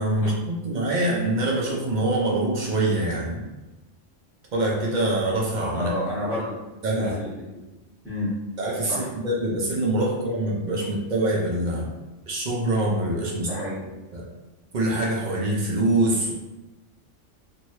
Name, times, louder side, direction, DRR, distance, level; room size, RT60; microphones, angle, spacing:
voice 1, 0.0-3.4 4.5-5.9 6.8-7.1 8.6-11.8 12.3-13.5 14.1-14.2 14.7-16.3, right 1 dB, 45° right, -3 dB, 0.6 m, -24 dB
voice 2, 5.7-6.5 7.0-7.3 8.0-8.3 8.9-9.1 13.4-13.9, left 1 dB, ahead, -14 dB, 0.9 m, -30 dB
2.9 x 2.7 x 3.0 m, 1.1 s
omnidirectional pair, 1.3 m